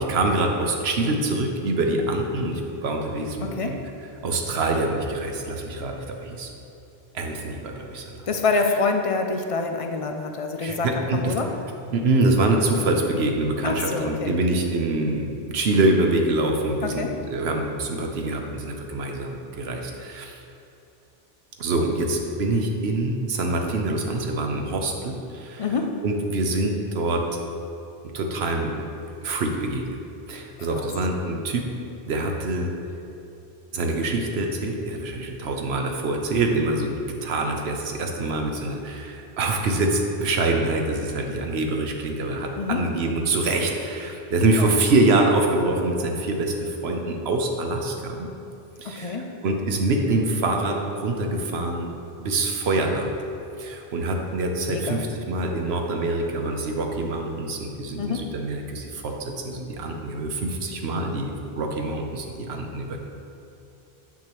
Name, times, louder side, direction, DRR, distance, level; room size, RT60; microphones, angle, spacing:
voice 1, 0.0-3.8 4.2-6.5 7.1-8.3 10.6-11.3 11.9-20.4 21.6-25.7 26.0-27.2 28.1-28.7 29.2-30.0 30.3-31.6 32.1-32.7 33.7-36.9 37.2-48.3 48.8-51.9 52.2-53.1 53.6-63.0, right 2 dB, 75° right, 2 dB, 1.0 m, -25 dB
voice 2, 3.4-3.8 8.3-11.5 13.6-14.3 16.8-17.1 25.6-25.9 30.7-30.9 42.6-42.8 44.6-44.8 48.8-49.3 54.7-55.0 58.0-58.2, left 4 dB, 50° left, 4 dB, 0.4 m, -26 dB
8.4 x 5.9 x 3.1 m, 2.8 s
omnidirectional pair, 1.1 m